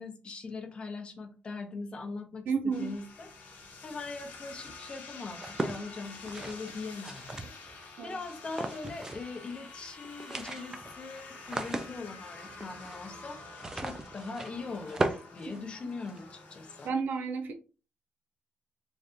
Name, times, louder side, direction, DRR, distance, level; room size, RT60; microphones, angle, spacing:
voice 1, 0.0-16.9, left 4 dB, 30° left, 0.6 m, -41 dB
voice 2, 2.5-2.9 8.0-8.2 15.5-15.6 16.8-17.5, right 5 dB, 65° right, 0.6 m, -31 dB
sound 1, 2.7-16.9, left 3 dB, 60° left, 0.9 m, -48 dB
sound 2, 5.3-7.9 8.5-9.4 9.6-9.7 10.0-16.2, right 2 dB, 15° right, 0.3 m, -37 dB
3.2 x 2.5 x 2.6 m
wide cardioid pair, 170°, 3 cm